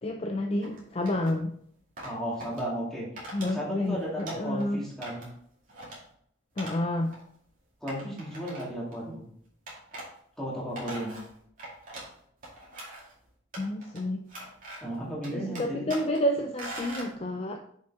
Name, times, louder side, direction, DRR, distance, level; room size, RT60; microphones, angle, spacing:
voice 1, 0.0-1.6 3.3-4.8 6.6-7.1 13.6-14.2 15.3-17.6, left 1 dB, 30° left, 4 dB, 0.4 m, -29 dB
sound 1, 0.6-1.4 2.0-2.6 3.2-3.5 3.9-4.7 5.0-5.4 5.7-6.0 6.6-6.8 7.1-7.2 7.9-8.9 9.7-10.1 10.5-12.1 12.4-13.1 13.5-14.0 14.3-15.0 15.2-16.2 16.6-17.1, right 1 dB, 40° right, 2.4 m, -42 dB
voice 2, 2.0-5.2 7.8-9.3 10.4-11.2 14.8-15.9, equal, ahead, -6 dB, 2.2 m, -35 dB
6.9 x 5.4 x 3.6 m, 0.65 s
head